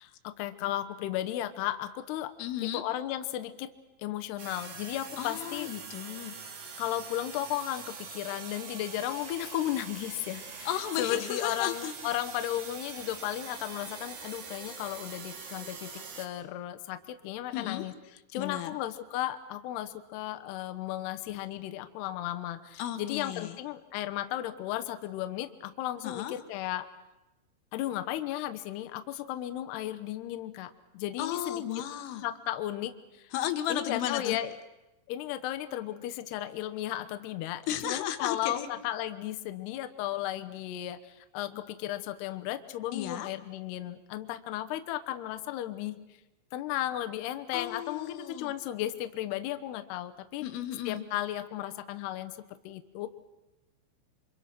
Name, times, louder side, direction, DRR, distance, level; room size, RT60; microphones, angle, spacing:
voice 1, 0.0-2.3 2.6-3.7 4.0-5.7 6.2-6.3 6.8-10.7 11.0-17.9 18.3-26.9 27.7-31.8 32.2-33.3 33.7-34.5 35.1-46.0 46.5-50.5 50.9-52.4 52.6-53.1, left 13 dB, 70° left, 9 dB, 2.7 m, -35 dB
voice 2, 2.4-2.8 5.2-6.4 10.7-11.9 17.5-17.9 18.4-18.7 22.8-23.6 26.0-26.4 31.2-32.3 33.3-34.4 37.7-38.7 42.9-43.3 47.5-48.5 50.4-51.0, left 11 dB, 90° left, 7 dB, 4.0 m, -34 dB
sound 1, 4.4-16.3, right 5 dB, 50° right, 3.1 m, -44 dB
28.0 x 25.0 x 6.0 m, 1.0 s
omnidirectional pair, 5.6 m